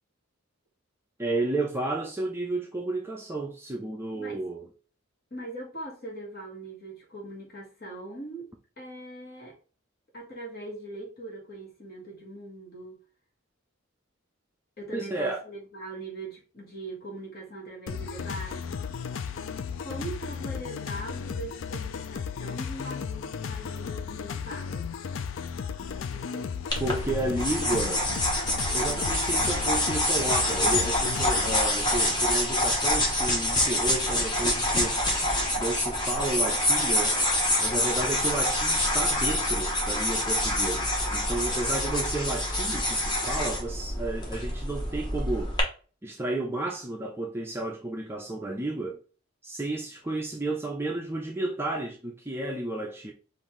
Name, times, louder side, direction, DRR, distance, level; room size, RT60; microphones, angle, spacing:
voice 1, 1.2-4.7 14.9-15.4 26.8-28.1 28.7-35.0 35.6-37.2 37.6-45.5 46.0-49.0 49.4-53.1, right 2 dB, 10° right, 0.4 m, -32 dB
voice 2, 5.3-8.5 8.8-9.6 10.1-13.0 14.8-18.6 19.8-24.9 25.8-26.5, right 2 dB, 45° left, 1.6 m, -41 dB
sound 1, 17.9-31.6, left 6 dB, 60° left, 0.3 m, -35 dB
sound 2, 26.7-45.6, left 1 dB, 20° left, 1.0 m, -26 dB
5.4 x 2.5 x 3.1 m
head